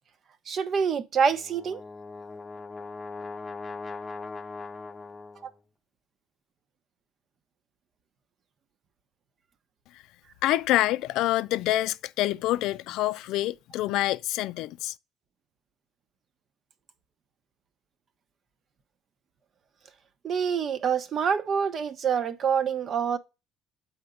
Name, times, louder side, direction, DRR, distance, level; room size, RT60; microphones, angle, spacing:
voice 1, 0.5-1.8 5.4-5.5 20.2-23.2, right 6 dB, 50° right, 0.9 m, -26 dB
Brass instrument, 1.3-5.6, left 3 dB, 25° left, 0.7 m, -40 dB
voice 2, 10.4-14.9, left 15 dB, 75° left, 0.4 m, -26 dB
7.8 x 4.4 x 3.7 m
supercardioid pair, 80°, 0 cm